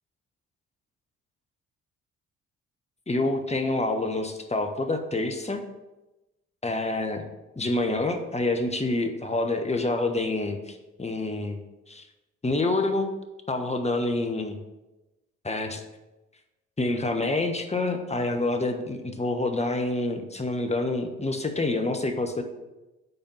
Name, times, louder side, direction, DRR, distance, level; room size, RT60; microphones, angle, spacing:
voice 1, 3.1-5.6 6.6-7.3 7.6-11.6 11.9-12.0 12.4-13.1 13.5-14.6 15.4-15.8 16.8-22.4, left 2 dB, 15° left, 6 dB, 1.3 m, -27 dB
9.0 x 4.3 x 5.6 m, 1.0 s
hypercardioid pair, 45°, 37 cm